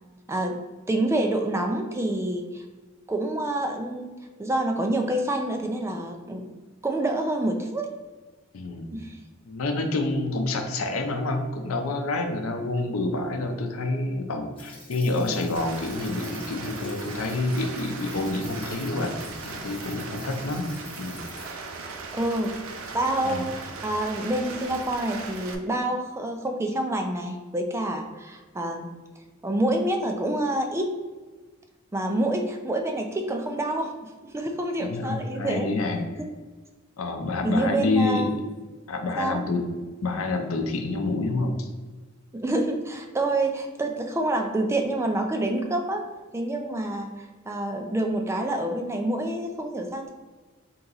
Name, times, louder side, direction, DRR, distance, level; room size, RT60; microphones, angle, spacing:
voice 1, 0.3-0.6 0.9-2.6 3.1-4.1 4.4-6.5 6.8-7.9 8.9-9.2 22.1-22.5 22.9-28.9 29.4-30.9 31.9-35.7 37.4-38.3 39.2-39.4 42.3-46.1 46.3-50.1, right 1 dB, 15° right, 3 dB, 0.3 m, -27 dB
voice 2, 8.5-8.9 9.5-19.1 19.4-20.7 21.0-21.2 23.2-23.5 34.8-36.0 37.0-38.3 38.9-39.6 40.0-41.7, left 2 dB, 80° left, 4 dB, 0.6 m, -28 dB
sound 1, 14.6-21.5, left 2 dB, 25° left, 1.2 m, -47 dB
Rain, 15.6-25.6, right 4 dB, 75° right, 0.5 m, -38 dB
3.7 x 2.9 x 3.9 m, 1.3 s
head